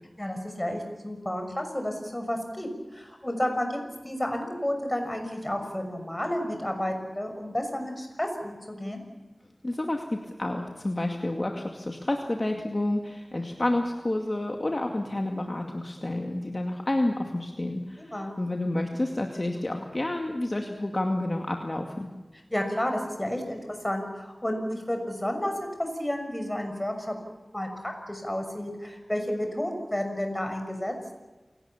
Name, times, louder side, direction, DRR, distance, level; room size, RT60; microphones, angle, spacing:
voice 1, 0.2-3.8 4.0-9.0 18.0-18.3 22.5-27.2 27.5-30.9, left 1 dB, 15° left, 5 dB, 6.2 m, -31 dB
voice 2, 9.6-22.1, left 1 dB, 40° left, 3 dB, 2.2 m, -29 dB
28.0 x 18.0 x 7.2 m, 1.2 s
wide cardioid pair, 50°, 0 cm